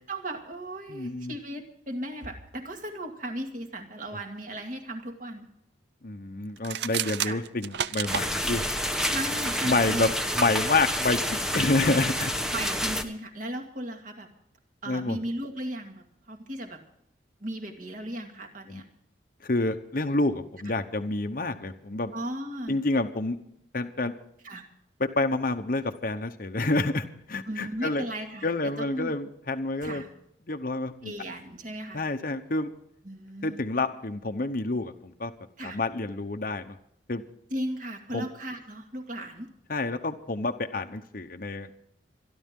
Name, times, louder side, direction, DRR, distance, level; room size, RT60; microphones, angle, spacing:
voice 1, 0.1-5.5 7.2-7.4 9.0-10.1 12.5-14.3 14.8-16.8 17.4-18.9 22.1-22.8 24.4-24.6 27.5-28.5 28.8-29.1 29.8-30.1 31.0-32.0 33.0-33.6 35.6-35.8 37.5-39.5, right 1 dB, 45° right, 4 dB, 2.2 m, -36 dB
voice 2, 0.9-1.3 6.0-8.6 9.6-11.2 11.5-12.3 14.9-15.2 18.7-18.8 19.4-22.1 22.7-23.4 23.7-24.1 25.0-28.0 28.4-30.0 30.5-31.1 31.9-32.7 33.4-35.3 35.6-36.7 37.1-37.2 38.1-38.3 39.7-41.7, left 2 dB, 45° left, 6 dB, 0.9 m, -28 dB
sound 1, 6.6-8.3, right 10 dB, 60° right, 0.5 m, -30 dB
sound 2, 8.1-13.0, equal, 5° right, 1.0 m, -28 dB
26.0 x 11.5 x 3.7 m, 0.73 s
head